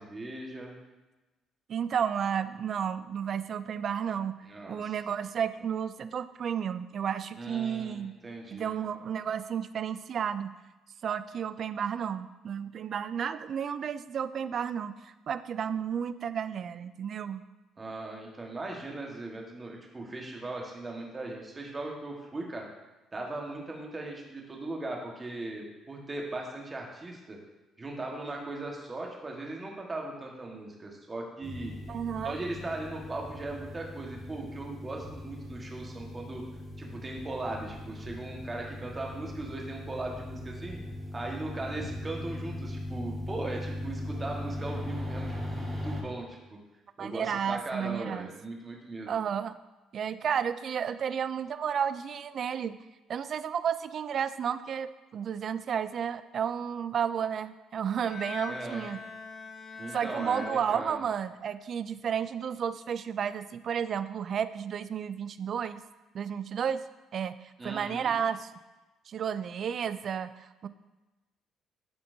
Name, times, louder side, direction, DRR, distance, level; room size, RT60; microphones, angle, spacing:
voice 1, 0.1-0.8 4.4-5.0 7.4-8.7 17.8-22.7 23.1-27.4 27.8-31.7 32.2-36.4 36.8-40.8 41.1-46.6 47.0-49.2 58.5-58.8 59.8-61.0 67.6-68.1, right 2 dB, 25° right, 0 dB, 1.4 m, -38 dB
voice 2, 1.7-4.4 4.7-8.1 8.5-10.6 11.0-17.4 31.9-32.4 47.0-48.3 49.1-49.6 49.9-52.8 53.1-59.0 59.9-65.8 66.1-66.8 67.1-68.5 69.1-70.7, right 8 dB, 50° right, 13 dB, 0.3 m, -32 dB
sound 1, 31.4-46.0, left 1 dB, 10° right, 1.7 m, -39 dB
Bowed string instrument, 58.0-61.4, left 4 dB, 40° left, 0.9 m, -42 dB
11.0 x 4.4 x 2.7 m, 1.1 s
cardioid pair, 105°, 0 cm